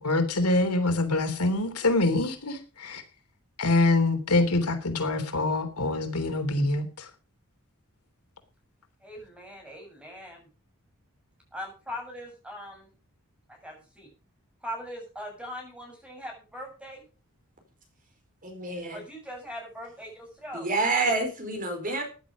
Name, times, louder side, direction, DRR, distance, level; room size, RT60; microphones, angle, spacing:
voice 1, 0.0-3.0 3.6-7.1, left 2 dB, 90° left, 6 dB, 3.3 m, -25 dB
voice 2, 9.0-10.5 11.5-12.9 13.5-14.1 14.6-17.0 18.9-20.7, equal, 5° right, 1 dB, 7.5 m, -40 dB
voice 3, 18.4-19.0 20.5-22.0, right 3 dB, 40° right, 4 dB, 4.5 m, -28 dB
15.5 x 11.0 x 5.1 m, 0.35 s
head